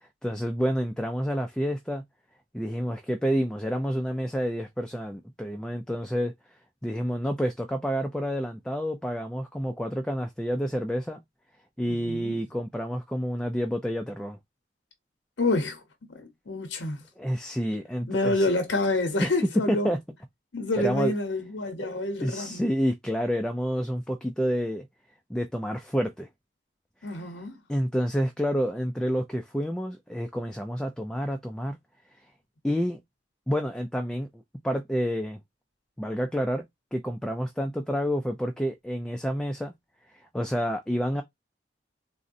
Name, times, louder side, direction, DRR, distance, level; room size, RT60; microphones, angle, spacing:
voice 1, 0.2-2.0 2.5-6.3 6.8-11.2 11.8-14.4 17.2-18.5 19.2-20.0 20.8-21.1 21.8-21.9 22.2-24.9 25.3-26.3 27.0-27.2 27.7-31.8 32.6-33.0 33.5-35.4 36.0-36.7 36.9-39.7 40.3-41.2, equal, 5° left, 0.3 m, -29 dB
voice 2, 11.8-12.4 15.4-15.8 16.1-17.0 18.1-19.9 20.5-22.6 27.0-27.6, left 2 dB, 85° left, 0.8 m, -28 dB
3.7 x 2.1 x 2.5 m
head